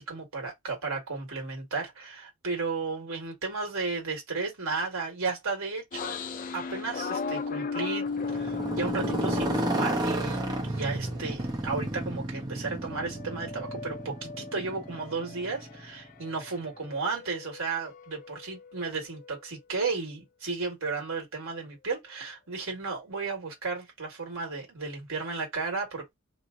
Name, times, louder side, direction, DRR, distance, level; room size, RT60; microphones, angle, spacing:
voice 1, 0.0-6.1 6.5-10.4 10.7-26.0, right 4 dB, 70° right, 1.4 m, -34 dB
sound 1, 5.9-11.9 12.3-16.5 16.8-19.4, left 4 dB, 35° left, 0.3 m, -37 dB
Motorcycle, 8.1-16.1, right 1 dB, 20° right, 0.6 m, -32 dB
2.9 x 2.0 x 3.6 m
head